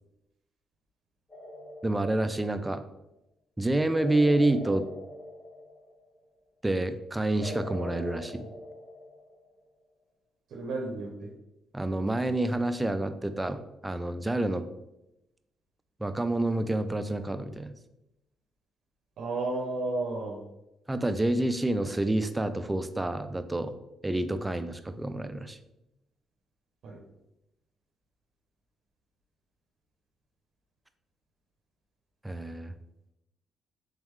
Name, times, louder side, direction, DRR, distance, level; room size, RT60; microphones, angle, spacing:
sound 1, 1.3-2.7 4.0-6.1 7.4-9.5, left 1 dB, 20° left, 1.3 m, -42 dB
voice 1, 1.8-2.8 3.6-4.9 6.6-8.5 11.7-14.6 16.0-17.8 20.9-23.8 24.0-25.6 32.2-32.7, right 1 dB, 15° right, 10 dB, 0.3 m, -28 dB
voice 2, 10.5-11.3 19.2-20.4 26.8-27.0, right 2 dB, 70° right, 0 dB, 0.6 m, -32 dB
3.6 x 3.6 x 3.1 m, 0.91 s
cardioid pair, 90°, 0 cm